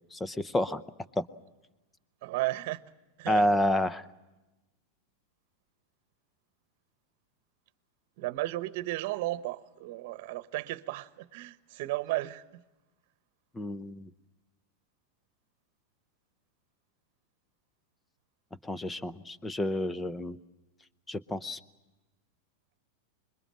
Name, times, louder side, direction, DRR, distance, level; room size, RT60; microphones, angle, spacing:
voice 1, 0.1-0.8 1.2-1.3 3.3-4.0 13.5-14.1 18.6-20.4 21.1-21.6, left 1 dB, 10° left, 0.8 m, -29 dB
voice 2, 2.2-2.8 3.2-3.5 8.2-12.6, right 18 dB, 60° right, 1.0 m, -34 dB
25.5 x 22.0 x 7.6 m
supercardioid pair, 135°, 0 cm